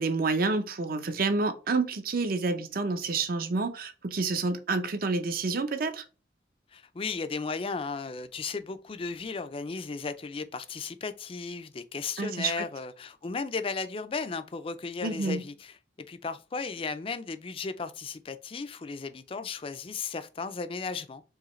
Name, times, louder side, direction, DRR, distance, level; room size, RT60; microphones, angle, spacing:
voice 1, 0.0-6.0 12.2-12.6 15.0-15.4, right 3 dB, 55° right, 0.7 m, -29 dB
voice 2, 6.7-15.8 16.1-21.2, left 4 dB, 30° left, 0.4 m, -35 dB
4.8 x 3.2 x 3.1 m
head